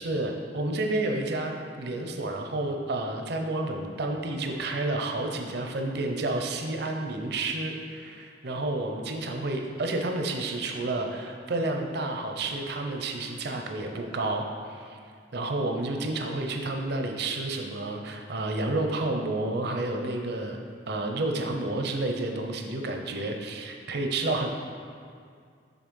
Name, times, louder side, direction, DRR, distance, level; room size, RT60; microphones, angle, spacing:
voice 1, 0.0-1.5 1.8-15.0 15.3-20.6 20.9-24.5, right 2 dB, 60° right, 3 dB, 0.7 m, -30 dB
6.1 x 4.0 x 5.4 m, 2.2 s
head